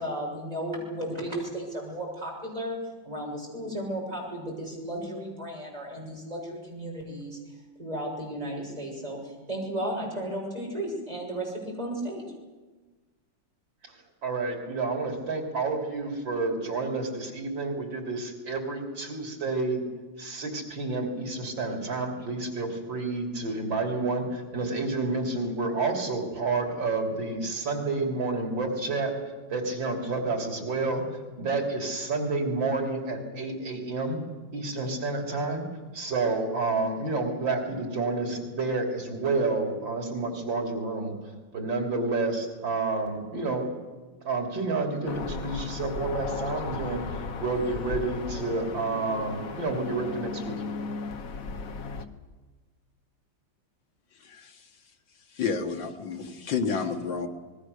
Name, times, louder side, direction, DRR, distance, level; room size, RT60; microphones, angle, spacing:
voice 1, 0.0-2.8 3.0-7.4 7.8-12.2, right 1 dB, 20° right, -2 dB, 6.6 m, -34 dB
voice 2, 14.2-19.9 20.2-29.2 29.5-34.2 34.5-35.6 35.9-43.7 44.3-50.6, right 3 dB, 90° right, 3 dB, 3.8 m, -29 dB
sound 1, 45.1-52.1, left 4 dB, 50° left, 1.4 m, -35 dB
voice 3, 54.2-54.7 55.3-57.3, left 5 dB, 80° left, 5 dB, 2.4 m, -30 dB
26.5 x 20.5 x 6.7 m, 1.3 s
omnidirectional pair, 2.0 m